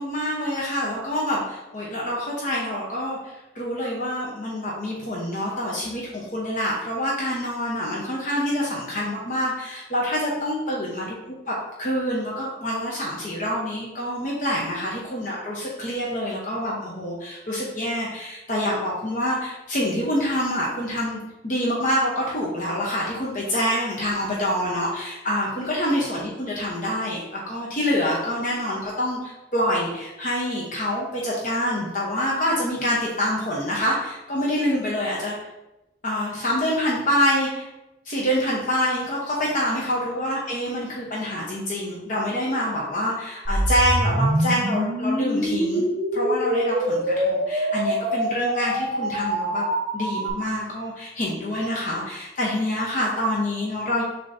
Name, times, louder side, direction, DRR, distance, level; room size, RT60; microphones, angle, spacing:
voice 1, 0.0-11.2 11.5-35.4 36.0-37.7 38.0-45.9 46.1-49.7 49.9-54.0, equal, 45° left, -4 dB, 0.9 m, -26 dB
sound 1, 43.4-50.3, equal, 65° right, 1.0 m, -24 dB
6.5 x 3.0 x 2.7 m, 0.96 s
head